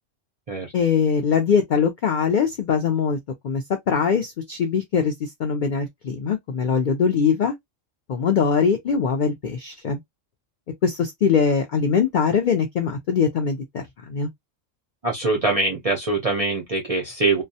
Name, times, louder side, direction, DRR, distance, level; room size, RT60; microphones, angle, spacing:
voice 1, 0.7-3.2 3.4-7.5 8.1-10.0 10.8-14.3, left 6 dB, 75° left, 0.4 m, -22 dB
voice 2, 15.0-17.4, right 3 dB, 50° right, 0.4 m, -23 dB
2.3 x 2.0 x 2.6 m
omnidirectional pair, 1.4 m